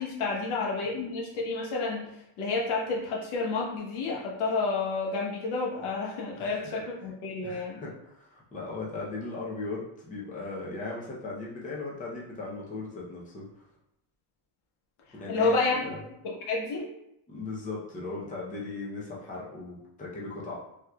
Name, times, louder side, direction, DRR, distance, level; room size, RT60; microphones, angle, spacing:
voice 1, 0.0-2.1 2.4-7.8 15.3-15.8 16.2-16.9, left 3 dB, 85° left, -3 dB, 1.1 m, -30 dB
voice 2, 6.4-6.8 7.4-13.5 15.1-16.0 17.3-20.6, left 3 dB, 15° left, -5 dB, 0.6 m, -38 dB
3.5 x 2.9 x 2.3 m, 0.81 s
cardioid pair, 150°, 49 cm